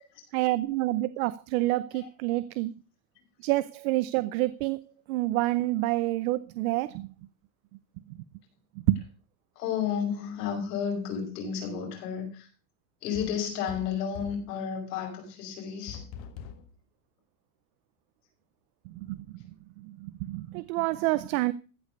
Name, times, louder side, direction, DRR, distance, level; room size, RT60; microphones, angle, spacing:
voice 1, 0.3-2.7 3.4-4.8 5.1-7.1 8.8-9.0 18.9-19.4 19.8-21.5, right 17 dB, 60° right, 0.7 m, -28 dB
voice 2, 9.6-12.5 13.0-16.0, left 7 dB, 85° left, 6.3 m, -32 dB
sound 1, 13.1-14.5 15.9-16.7, left 7 dB, 55° left, 1.8 m, -42 dB
15.0 x 5.1 x 6.6 m
supercardioid pair, 155°, 47 cm